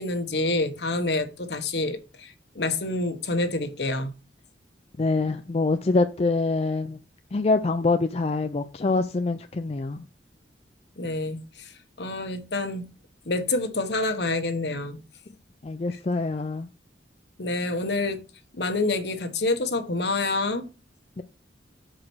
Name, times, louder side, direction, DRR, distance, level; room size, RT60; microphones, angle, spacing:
voice 1, 0.0-4.1 11.0-11.7 12.0-12.9 13.3-15.0 17.4-18.2 18.5-20.7, left 2 dB, 70° left, 1.1 m, -27 dB
voice 2, 5.0-7.0 7.3-10.1 15.6-16.7 21.2-21.3, left 3 dB, 35° left, 0.4 m, -25 dB
5.4 x 4.9 x 6.1 m
head